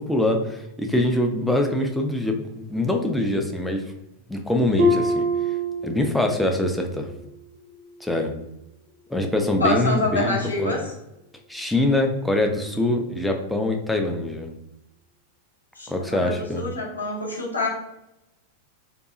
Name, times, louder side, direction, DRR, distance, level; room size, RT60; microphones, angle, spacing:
voice 1, 0.0-3.8 4.3-5.3 5.8-7.1 8.0-8.3 9.1-10.7 11.5-14.5 15.9-16.7, left 1 dB, 5° left, 3 dB, 0.4 m, -24 dB
Harp, 4.8-6.6 6.9-7.3 7.9-8.0, equal, 60° right, 0.6 m, -24 dB
voice 2, 9.6-10.9 15.8-17.7, left 2 dB, 80° left, -3 dB, 0.7 m, -26 dB
2.6 x 2.2 x 2.4 m, 0.88 s
figure-of-eight pair, 90°, 0 cm